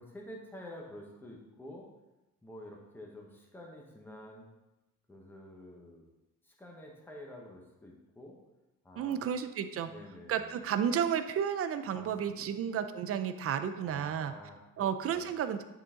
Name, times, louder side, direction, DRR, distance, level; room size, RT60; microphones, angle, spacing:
voice 1, 0.0-1.9 2.4-4.5 5.1-6.0 6.4-8.4 8.8-9.3 9.8-10.6 11.9-12.5 13.8-15.3, left 1 dB, 5° left, -1 dB, 0.9 m, -49 dB
voice 2, 9.0-9.9 10.3-14.3 14.8-15.6, right 8 dB, 45° right, 10 dB, 0.4 m, -32 dB
9.4 x 3.9 x 3.7 m, 0.98 s
cardioid pair, 165°, 34 cm